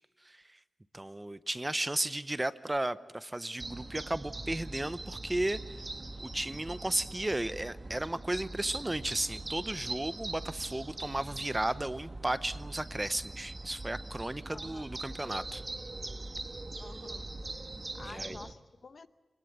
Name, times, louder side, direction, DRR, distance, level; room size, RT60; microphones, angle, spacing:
voice 1, 0.2-0.6 0.9-5.6 6.2-15.6 18.0-18.4, right 1 dB, 20° right, 14 dB, 0.7 m, -34 dB
sound 1, 3.6-18.5, right 2 dB, 35° right, 1.3 m, -42 dB
Wind instrument woodwind instrument, 13.3-17.5, left 1 dB, 10° left, 5.8 m, -69 dB
voice 2, 14.5-14.8 16.8-17.3 17.9-19.1, left 4 dB, 55° left, 12 dB, 0.8 m, -49 dB
25.5 x 20.0 x 8.1 m, 1.2 s
wide cardioid pair, 90°, 0 cm